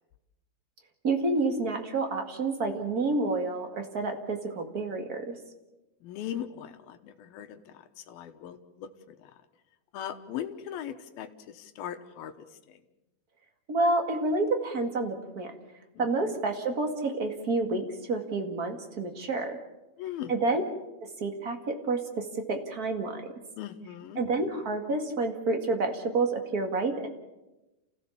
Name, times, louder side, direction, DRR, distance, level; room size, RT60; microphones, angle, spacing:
voice 1, 1.0-5.3 13.7-15.5 16.0-19.6 20.3-20.6 21.0-23.2 24.2-27.1, right 3 dB, 35° right, 4 dB, 1.7 m, -29 dB
voice 2, 6.0-9.3 9.9-12.8 15.9-16.1 20.0-20.4 23.6-24.2, left 10 dB, 75° left, 8 dB, 3.0 m, -39 dB
29.0 x 16.0 x 7.2 m, 1.0 s
omnidirectional pair, 4.4 m